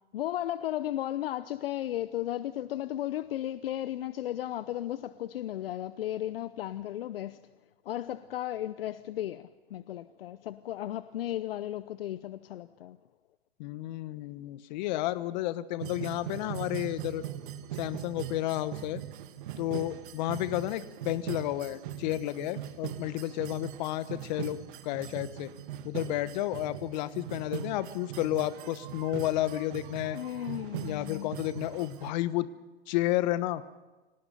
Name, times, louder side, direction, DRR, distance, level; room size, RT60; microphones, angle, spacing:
voice 1, 0.1-7.4 7.8-13.0 30.1-31.3, left 13 dB, 65° left, 0.8 m, -35 dB
voice 2, 13.6-17.2 17.7-19.0 19.6-25.5 25.8-30.2 30.8-32.5 32.9-33.6, left 15 dB, 45° left, 1.2 m, -31 dB
sound 1, 15.8-32.1, right 11 dB, 50° right, 1.5 m, -41 dB
25.5 x 18.0 x 6.8 m
hypercardioid pair, 130°, 32 cm